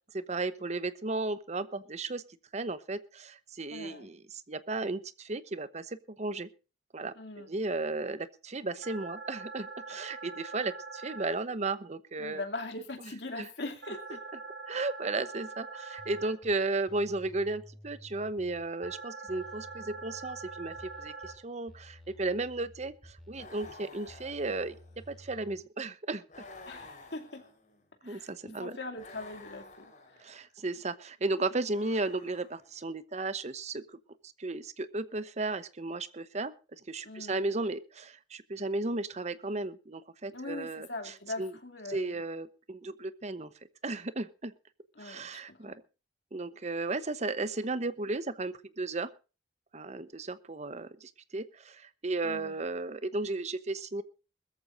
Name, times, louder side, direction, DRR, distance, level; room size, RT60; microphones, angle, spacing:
voice 1, 0.1-2.2 2.5-4.2 4.5-6.5 6.9-12.4 13.4-13.5 14.7-24.7 25.1-26.4 28.0-28.8 30.2-33.8 34.4-41.5 41.9-43.5 43.8-44.5 45.0-45.8 46.3-49.1 49.7-54.0, right 2 dB, 40° right, 14 dB, 0.9 m, -34 dB
voice 2, 3.7-4.1 7.1-7.5 12.2-14.2 26.6-27.4 28.0-30.3 37.0-37.5 40.3-42.2 45.0-45.8 52.2-52.6, left 2 dB, 75° left, 4 dB, 2.7 m, -41 dB
sound 1, 8.8-11.3 13.8-16.3 18.8-21.3, right 3 dB, 90° right, 7.0 m, -43 dB
sound 2, 16.0-16.5 16.9-18.9 19.3-21.4 21.7-23.7 24.1-25.5, equal, ahead, 3.1 m, -53 dB
sound 3, 23.3-25.1 26.3-27.8 28.9-30.3 31.7-32.8, left 3 dB, 45° left, 4.9 m, -51 dB
21.5 x 14.0 x 2.6 m, 0.33 s
head